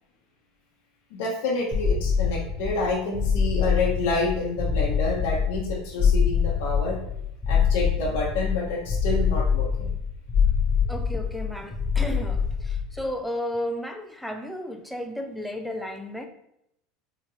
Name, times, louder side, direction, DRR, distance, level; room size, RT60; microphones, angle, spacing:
voice 1, 1.1-7.0 7.5-9.9, left 3 dB, 75° left, -3 dB, 0.7 m, -28 dB
sound 1, 1.7-13.1, left 6 dB, 20° left, 0.8 m, -25 dB
voice 2, 10.8-16.3, left 1 dB, ahead, 4 dB, 0.4 m, -33 dB
4.1 x 2.9 x 2.7 m, 0.78 s
supercardioid pair, 135°, 0 cm